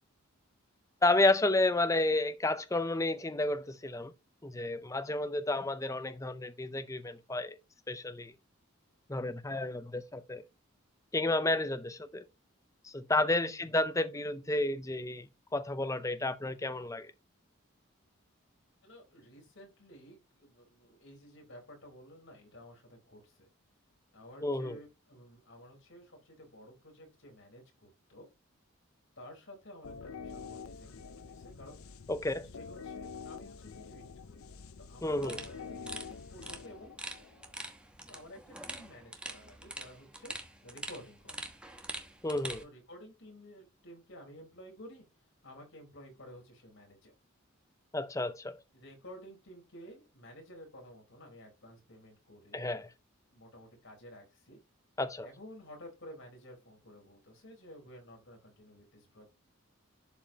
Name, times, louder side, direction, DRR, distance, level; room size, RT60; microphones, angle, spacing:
voice 1, 1.0-4.1 4.4-7.6 7.9-8.3 9.1-10.4 11.1-12.2 12.8-17.1 24.4-24.8 32.1-32.5 35.0-35.4 42.2-42.6 47.9-48.6 52.5-52.9 55.0-55.3, left 2 dB, 15° left, 0.6 m, -31 dB
voice 2, 13.3-13.7 18.8-23.5 24.1-28.3 29.2-31.8 32.6-34.4 34.8-36.9 38.1-40.3 40.6-41.4 42.6-45.0 45.4-47.1 48.7-52.6 53.3-54.6 55.2-59.3, equal, 65° left, 4.3 m, -53 dB
sound 1, 29.8-37.5, left 5 dB, 85° left, 0.6 m, -47 dB
sound 2, 35.2-42.6, right 1 dB, 5° right, 1.0 m, -45 dB
11.5 x 5.1 x 2.9 m
head